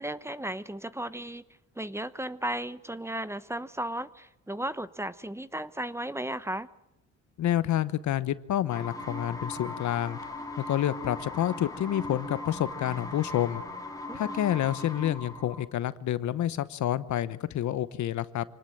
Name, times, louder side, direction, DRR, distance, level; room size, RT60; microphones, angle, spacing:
voice 1, 0.0-1.4 1.8-6.7 14.1-14.4, right 1 dB, 10° right, 15 dB, 0.9 m, -35 dB
voice 2, 7.4-10.2 10.6-13.6 14.1-18.4, left 12 dB, 70° left, 15 dB, 1.0 m, -28 dB
sound 1, 8.7-15.6, left 2 dB, 10° left, 3.2 m, -39 dB
25.5 x 19.0 x 8.9 m, 0.88 s
cardioid pair, 90°, 30 cm